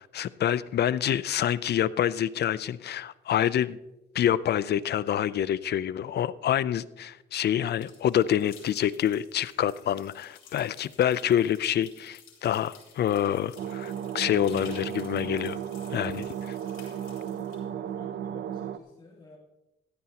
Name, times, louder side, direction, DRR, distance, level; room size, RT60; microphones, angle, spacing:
voice 1, 0.0-3.8 4.1-15.6 15.9-16.6, left 10 dB, 55° left, 17 dB, 0.5 m, -27 dB
sound 1, 7.7-17.6, left 7 dB, 85° left, 3.5 m, -53 dB
sound 2, 13.6-18.8, right 9 dB, 65° right, 0.7 m, -35 dB
voice 2, 17.2-19.4, left 2 dB, 25° left, -3 dB, 2.2 m, -52 dB
16.5 x 13.5 x 2.9 m, 0.93 s
cardioid pair, 90°, 20 cm